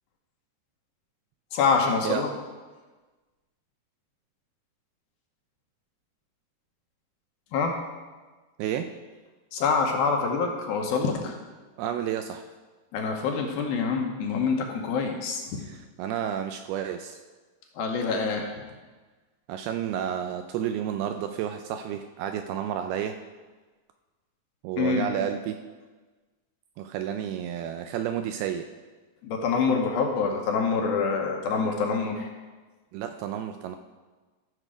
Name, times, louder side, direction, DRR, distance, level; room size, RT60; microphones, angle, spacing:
voice 1, 1.5-2.3 7.5-7.8 9.5-11.4 12.9-15.6 17.7-18.5 24.8-25.1 29.2-32.3, left 5 dB, 75° left, 2 dB, 2.5 m, -26 dB
voice 2, 11.8-12.5 15.6-17.2 19.5-23.2 24.6-25.6 26.8-28.7 32.9-33.8, right 9 dB, 85° right, 7 dB, 2.3 m, -31 dB
14.5 x 6.6 x 4.9 m, 1.3 s
omnidirectional pair, 4.9 m